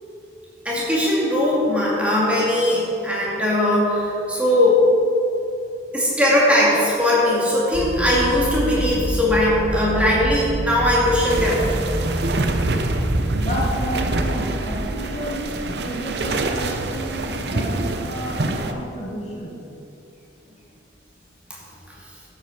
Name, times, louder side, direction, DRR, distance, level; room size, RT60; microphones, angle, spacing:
voice 1, 0.6-4.8 5.9-11.6 21.5-21.6, left 1 dB, 5° right, -6 dB, 2.6 m, -19 dB
sound 1, 7.7-14.8, right 1 dB, 40° right, 1.2 m, -27 dB
Sea (swirl), 11.3-18.7, right 2 dB, 60° right, 0.8 m, -26 dB
voice 2, 13.4-19.6, equal, 35° left, -5 dB, 1.7 m, -31 dB
12.5 x 8.3 x 5.0 m, 2.7 s
head